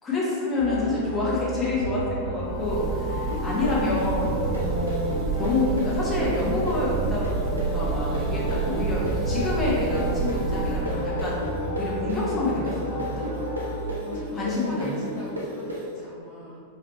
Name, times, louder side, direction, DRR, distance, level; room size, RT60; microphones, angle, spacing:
voice 1, 0.0-11.4 11.7-13.3 14.3-15.0, left 2 dB, 15° left, -7 dB, 1.3 m, -28 dB
sound 1, 0.6-13.8, equal, 75° left, 0.9 m, -32 dB
Breathing / Bird, 2.5-11.0, right 6 dB, 35° right, 0.4 m, -30 dB
sound 2, 3.3-10.9 11.2-15.8, left 1 dB, 80° right, 1.1 m, -33 dB
voice 2, 13.9-16.6, left 1 dB, 45° left, -6 dB, 0.7 m, -41 dB
4.7 x 3.2 x 3.1 m, 2.3 s
figure-of-eight pair, 90°, 0 cm